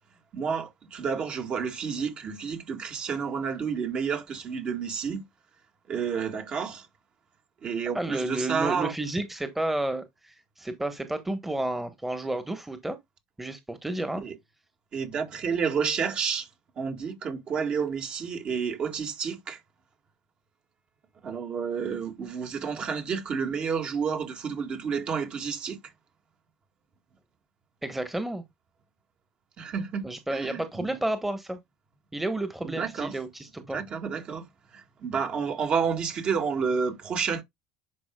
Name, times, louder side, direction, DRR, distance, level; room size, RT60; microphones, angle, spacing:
voice 1, 0.3-5.2 5.9-6.9 7.6-8.9 14.2-14.4 14.9-16.5 16.8-19.6 21.2-25.8 29.6-30.9 32.6-33.2 33.7-34.5 34.7-37.4, right 6 dB, 45° right, 1.9 m, -30 dB
voice 2, 7.9-13.0 13.4-14.2 27.8-28.4 30.0-31.6 32.1-33.8, right 1 dB, 10° right, 1.3 m, -31 dB
10.5 x 4.7 x 2.3 m
hypercardioid pair, 80°, 3 cm